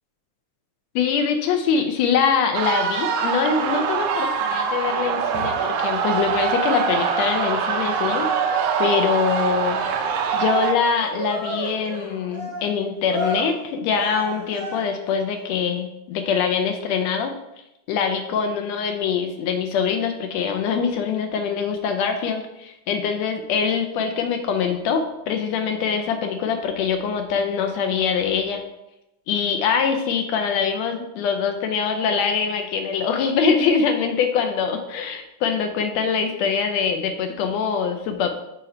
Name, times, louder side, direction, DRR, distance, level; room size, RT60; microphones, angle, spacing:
voice 1, 0.9-8.3 8.8-9.9 10.3-17.3 17.9-28.6 29.3-38.3, left 6 dB, 75° left, 6 dB, 1.6 m, -23 dB
sound 1, 2.5-10.7, right 7 dB, 85° right, 1.4 m, -24 dB
Cheering, 5.0-15.1, right 1 dB, 40° right, 1.3 m, -32 dB
6.6 x 3.8 x 4.3 m, 0.89 s
omnidirectional pair, 3.4 m